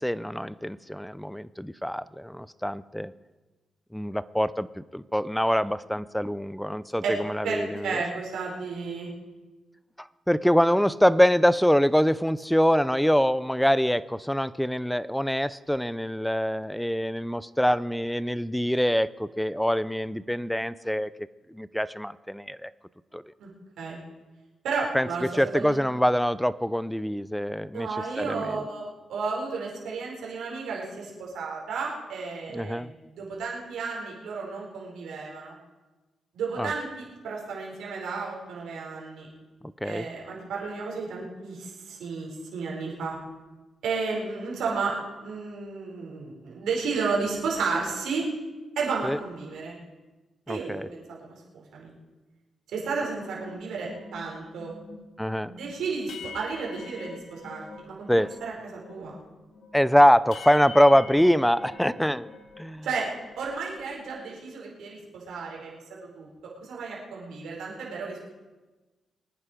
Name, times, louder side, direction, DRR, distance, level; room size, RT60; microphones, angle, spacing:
voice 1, 0.0-3.1 3.9-8.0 10.0-21.1 21.5-22.7 23.1-23.2 24.9-27.9 28.2-28.6 32.5-32.9 36.6-36.7 39.8-40.1 49.0-49.2 50.5-50.9 55.2-55.5 58.1-58.3 59.7-62.3 62.6-62.8, equal, 5° left, 17 dB, 0.5 m, -24 dB
voice 2, 7.4-9.1 23.4-23.5 23.8-24.0 24.6-25.8 27.7-35.6 36.3-39.3 39.8-43.2 43.8-44.9 45.2-48.3 48.8-49.7 50.5-51.9 52.7-54.7 55.5-59.1 62.8-63.1 63.4-66.3 66.6-68.2, right 4 dB, 90° right, -3 dB, 4.9 m, -33 dB
sound 1, 53.1-58.5 58.8-62.7 63.0-64.1, left 4 dB, 80° left, 1.9 m, -45 dB
24.0 x 9.6 x 5.1 m, 1.2 s
cardioid pair, 85°, 0 cm